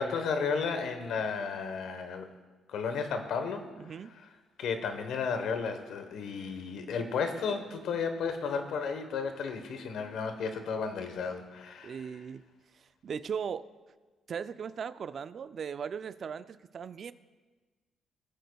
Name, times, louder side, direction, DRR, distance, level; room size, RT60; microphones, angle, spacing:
voice 1, 0.0-2.3 2.7-3.7 4.6-12.0, left 5 dB, 75° left, 7 dB, 1.1 m, -33 dB
voice 2, 3.8-4.2 11.8-12.4 12.7-13.7 14.3-17.1, right 7 dB, 50° right, 13 dB, 0.4 m, -38 dB
19.0 x 9.2 x 2.3 m, 1.3 s
cardioid pair, 90°, 0 cm